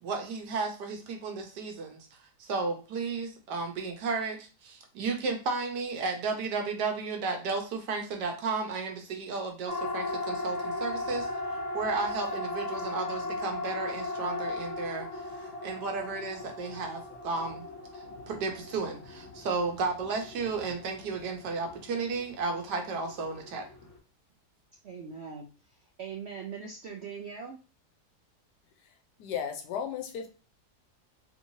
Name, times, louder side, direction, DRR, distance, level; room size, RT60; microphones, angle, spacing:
voice 1, 0.0-2.1 2.4-11.3 11.7-17.7 17.9-23.7, right 4 dB, 90° right, 3 dB, 1.4 m, -33 dB
Siren, 9.7-24.0, left 2 dB, 50° left, 1.2 m, -37 dB
voice 2, 24.8-25.5 26.0-27.5, right 6 dB, 75° right, 1 dB, 0.6 m, -40 dB
voice 3, 29.2-30.3, left 8 dB, 80° left, 4 dB, 1.2 m, -34 dB
3.4 x 2.9 x 2.7 m, 0.34 s
omnidirectional pair, 1.7 m